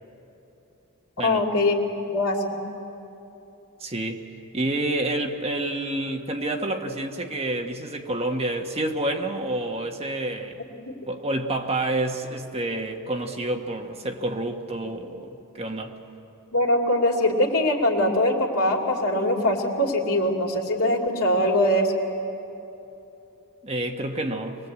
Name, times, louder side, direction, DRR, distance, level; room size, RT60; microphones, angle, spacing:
voice 1, 1.2-1.8 2.1-2.6 10.8-10.9 16.5-21.9, left 1 dB, 80° left, 0 dB, 2.7 m, -22 dB
voice 2, 3.8-4.2 4.5-10.6 11.1-15.9 23.6-24.6, right 1 dB, 25° right, 3 dB, 1.4 m, -28 dB
24.0 x 20.5 x 8.3 m, 2.9 s
head